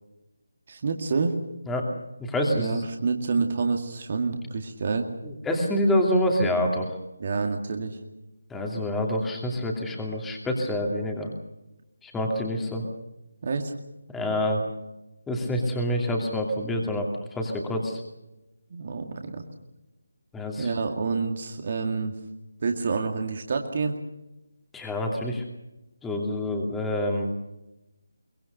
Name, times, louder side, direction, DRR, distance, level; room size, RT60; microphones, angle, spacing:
voice 1, 0.7-1.3 2.5-5.1 7.2-8.0 13.4-13.7 18.7-19.4 20.6-22.1 22.6-24.0, right 4 dB, 40° right, 4 dB, 2.1 m, -28 dB
voice 2, 2.2-2.7 5.2-7.0 8.5-11.3 12.0-12.8 14.1-14.6 15.3-18.0 20.3-20.7 24.7-25.4 26.0-27.3, left 1 dB, 5° left, 1 dB, 2.6 m, -27 dB
23.5 x 21.5 x 6.6 m, 0.97 s
figure-of-eight pair, 155°, 0 cm